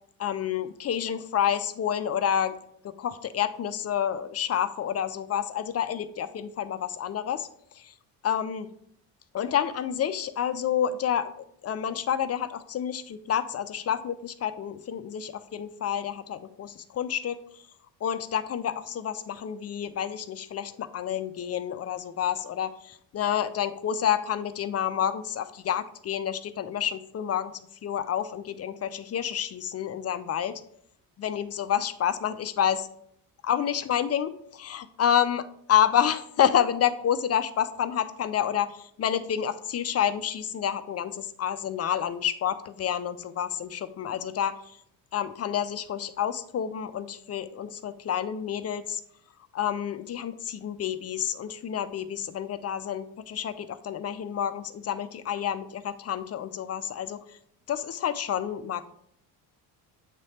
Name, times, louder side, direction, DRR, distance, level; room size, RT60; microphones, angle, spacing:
voice 1, 0.2-2.5 2.8-7.5 7.7-7.9 8.2-8.7 9.3-17.6 18.0-27.5 27.8-30.6 31.2-32.9 33.4-44.8 45.1-49.0 49.5-57.4 57.7-58.9, left 9 dB, 35° left, 12 dB, 0.5 m, -29 dB
8.1 x 3.2 x 4.2 m, 0.69 s
supercardioid pair, 80°, 44 cm